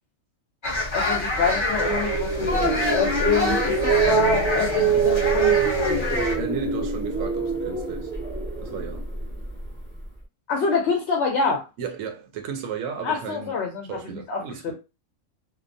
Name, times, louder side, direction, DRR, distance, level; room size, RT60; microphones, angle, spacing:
sound 1, 0.6-6.3, left 2 dB, 30° left, 0.6 m, -26 dB
voice 1, 0.9-6.2 10.5-11.7 13.0-14.7, left 5 dB, 60° left, 0.8 m, -26 dB
sound 2, 1.6-9.7, right 5 dB, 20° right, 0.3 m, -25 dB
voice 2, 6.4-8.1 8.6-9.0 11.8-13.6 13.9-14.7, right 7 dB, 80° right, 1.0 m, -34 dB
2.8 x 2.0 x 2.5 m
omnidirectional pair, 1.4 m